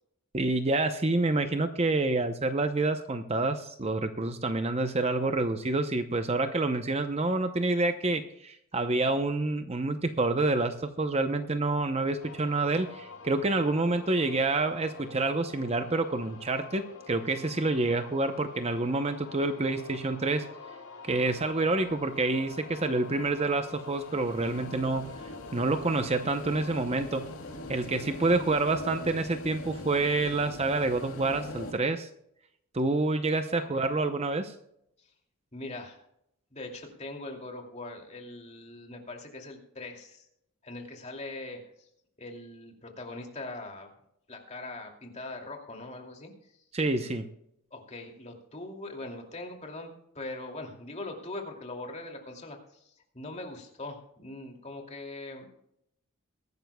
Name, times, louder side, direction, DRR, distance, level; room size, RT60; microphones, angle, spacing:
voice 1, 0.3-20.5 21.0-25.1 25.5-27.3 27.7-32.1 32.7-34.5 46.7-47.3, right 2 dB, 30° right, 8 dB, 0.7 m, -28 dB
sound 1, 12.2-31.4, left 4 dB, 85° left, 4.6 m, -48 dB
sound 2, 21.1-31.7, left 1 dB, 65° left, 2.8 m, -43 dB
voice 2, 35.5-36.0 36.5-40.3 40.6-41.9 42.2-43.9 44.3-46.6 47.7-49.9 50.1-55.5, left 2 dB, 30° left, 2 dB, 2.6 m, -41 dB
22.5 x 12.0 x 2.3 m, 0.76 s
head